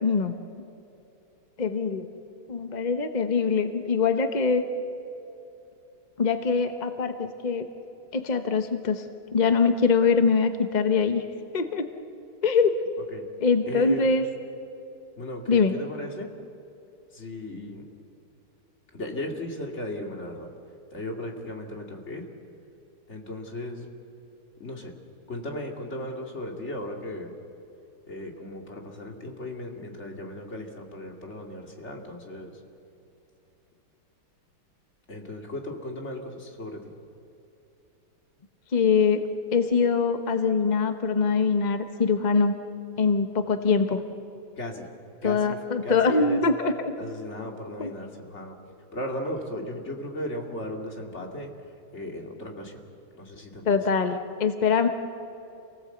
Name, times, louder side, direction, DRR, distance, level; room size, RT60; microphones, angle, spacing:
voice 1, 0.0-0.3 1.6-2.1 2.5-4.6 6.2-7.7 8.1-9.0 9.3-11.2 11.5-11.9 12.4-12.7 13.4-14.3 15.5-15.7 38.7-39.2 39.5-42.5 43.0-44.0 45.2-46.9 47.8-47.9 53.6-54.9, left 5 dB, 50° left, 7 dB, 0.5 m, -23 dB
voice 2, 13.7-14.1 15.2-16.3 17.1-17.8 18.9-20.5 20.9-22.3 23.1-23.8 24.6-24.9 25.3-27.3 28.1-32.5 35.1-36.8 44.6-44.8 45.2-46.4 47.0-48.6 48.9-51.5 51.9-52.7 53.1-53.6, left 1 dB, 30° left, 2 dB, 2.6 m, -36 dB
28.0 x 19.0 x 7.9 m, 2.8 s
omnidirectional pair, 2.4 m